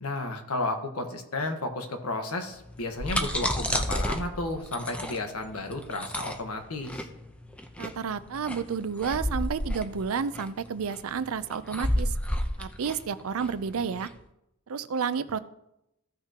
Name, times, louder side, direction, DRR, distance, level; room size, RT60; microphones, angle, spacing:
voice 1, 0.0-7.1, left 2 dB, 80° left, 5 dB, 1.3 m, -32 dB
sound 1, 2.7-14.1, equal, 5° left, 0.7 m, -31 dB
voice 2, 7.8-12.1 12.6-14.1 14.7-15.4, right 6 dB, 70° right, 14 dB, 0.5 m, -31 dB
15.5 x 5.8 x 2.9 m, 0.84 s
head